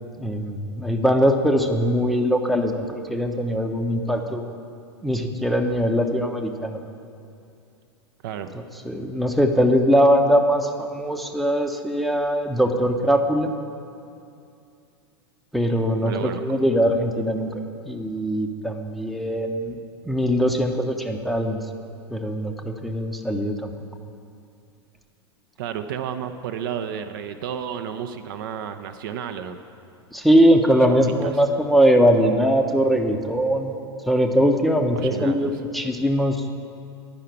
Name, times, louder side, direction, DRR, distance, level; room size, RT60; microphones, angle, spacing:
voice 1, 0.2-4.5 5.0-6.8 8.8-13.5 15.5-17.5 17.9-19.7 20.1-21.6 22.1-23.7 30.1-33.7 34.1-36.4, equal, ahead, 3 dB, 0.7 m, -21 dB
voice 2, 8.2-8.6 16.0-16.6 25.6-29.6 30.9-31.4 34.9-35.6, right 8 dB, 50° right, 8 dB, 0.6 m, -32 dB
11.0 x 5.7 x 8.4 m, 2.5 s
figure-of-eight pair, 90°, 14 cm